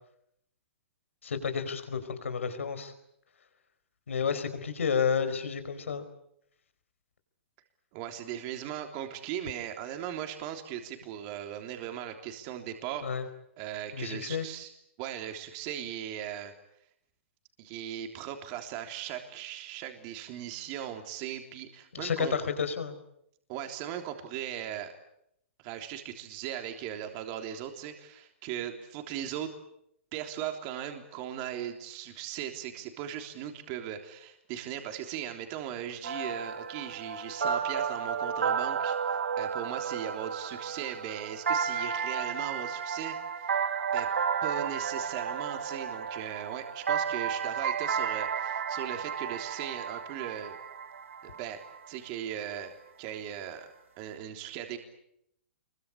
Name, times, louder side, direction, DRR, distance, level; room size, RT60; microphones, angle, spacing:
voice 1, 1.2-2.9 4.1-6.0 13.0-13.2 13.9-14.5 21.9-23.0, left 6 dB, 90° left, 10 dB, 4.6 m, -31 dB
voice 2, 7.9-13.1 13.6-14.7 15.0-16.5 17.6-22.3 23.5-24.9 25.6-29.5 30.1-43.5 43.9-44.1 44.4-50.6 51.2-52.7 53.0-53.7 54.0-54.8, right 10 dB, 40° right, 5 dB, 3.4 m, -38 dB
sound 1, 36.0-51.8, right 6 dB, 85° right, 2.1 m, -32 dB
26.0 x 23.0 x 8.7 m, 0.75 s
hypercardioid pair, 140°, 7 cm